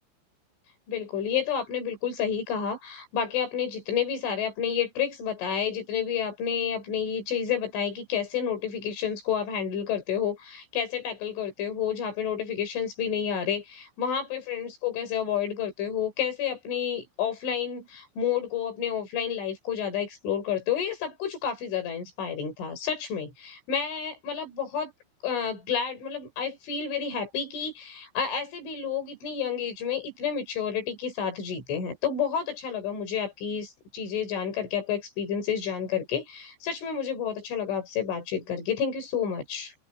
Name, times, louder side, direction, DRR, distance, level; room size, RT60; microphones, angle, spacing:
voice 1, 0.9-24.9 25.2-39.8, left 8 dB, 80° left, 8.3 m, -30 dB
omnidirectional pair, 5.4 m